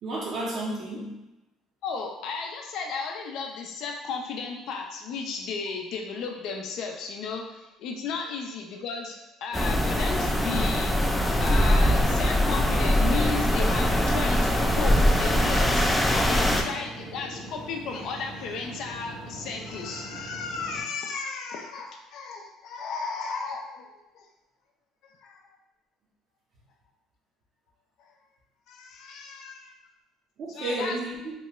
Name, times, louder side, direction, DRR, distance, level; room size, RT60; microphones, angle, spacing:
voice 1, 0.0-1.2 30.4-31.3, right 2 dB, 55° right, -5 dB, 0.7 m, -32 dB
voice 2, 1.8-10.9 11.4-24.3 25.2-25.4 28.0-28.1 28.7-29.8 30.5-31.0, left 5 dB, 65° left, 2 dB, 0.5 m, -34 dB
sound 1, 9.5-16.6, equal, 5° left, 0.3 m, -22 dB
sound 2, 12.4-20.8, right 1 dB, 85° right, 0.8 m, -42 dB
3.0 x 2.3 x 3.0 m, 0.99 s
cardioid pair, 115°, 0 cm